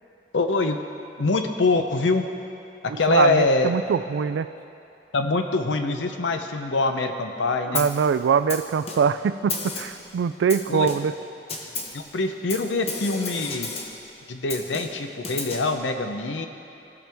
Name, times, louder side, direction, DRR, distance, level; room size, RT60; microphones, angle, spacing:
voice 1, 0.3-0.8 1.2-2.2 3.0-3.7 5.1-7.9 10.7-10.9 11.9-13.7 14.3-16.5, left 3 dB, 85° left, 6 dB, 0.7 m, -24 dB
voice 2, 2.9-4.5 7.7-11.1, right 6 dB, 75° right, 13 dB, 0.3 m, -23 dB
Snare drum, 7.7-8.1 8.5-9.2 9.5-10.1 10.5-11.2 11.5-12.0 12.5-14.0 14.5-15.7, left 4 dB, 35° left, 0.9 m, -33 dB
16.5 x 5.9 x 3.5 m, 2.7 s
head